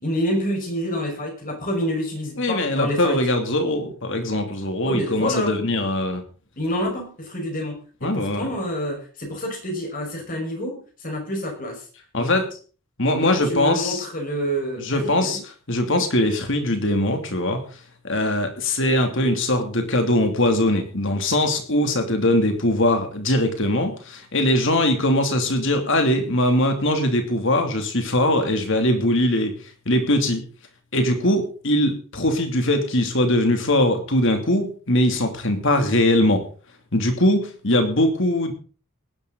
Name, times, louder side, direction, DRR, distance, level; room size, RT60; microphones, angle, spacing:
voice 1, 0.0-3.2 4.8-5.8 6.6-11.8 12.2-12.3 13.2-15.4, equal, 40° left, 2 dB, 5.5 m, -28 dB
voice 2, 2.4-6.2 8.0-8.4 12.1-12.4 13.0-14.0 14.8-15.4 15.7-17.6 18.0-29.5 29.9-30.4 30.9-36.4 36.9-38.5, left 1 dB, 55° left, 5 dB, 2.9 m, -21 dB
19.0 x 11.5 x 4.0 m, 0.39 s
head